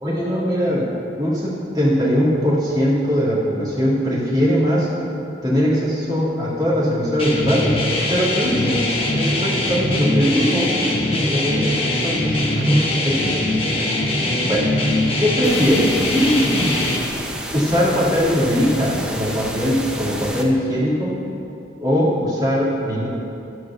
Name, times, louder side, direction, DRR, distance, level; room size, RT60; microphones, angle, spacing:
voice 1, 0.0-0.9 1.2-4.9 5.4-7.8 8.1-11.7 12.0-13.4 14.4-14.7 15.2-16.8 17.5-21.2 21.8-23.1, equal, 20° right, -7 dB, 2.3 m, -20 dB
sound 1, 7.2-17.0, left 1 dB, 30° left, 1.1 m, -21 dB
sound 2, 15.4-20.4, right 1 dB, 5° right, 0.6 m, -31 dB
12.5 x 4.8 x 7.0 m, 2.7 s
head